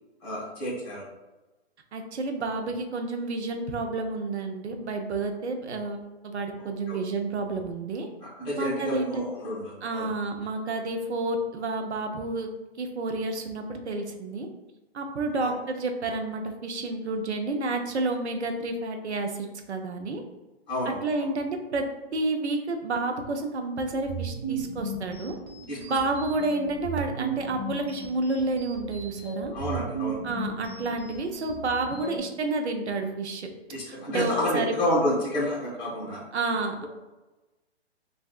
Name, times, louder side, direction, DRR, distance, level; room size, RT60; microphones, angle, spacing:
voice 1, 0.2-1.1 6.6-7.0 8.2-10.1 15.4-15.5 20.7-21.0 25.7-25.8 29.5-30.2 33.7-36.2, left 1 dB, 15° left, -7 dB, 1.3 m, -30 dB
voice 2, 1.9-8.1 8.6-9.3 9.8-12.5 12.8-14.5 14.9-20.2 21.0-21.8 22.1-25.4 25.8-29.5 30.2-33.5 33.9-34.7 36.3-36.9, right 2 dB, 80° right, 4 dB, 0.6 m, -30 dB
sound 1, 23.9-32.2, right 4 dB, 25° right, 0.5 m, -36 dB
3.2 x 2.5 x 2.3 m, 1.1 s
hypercardioid pair, 140°, 33 cm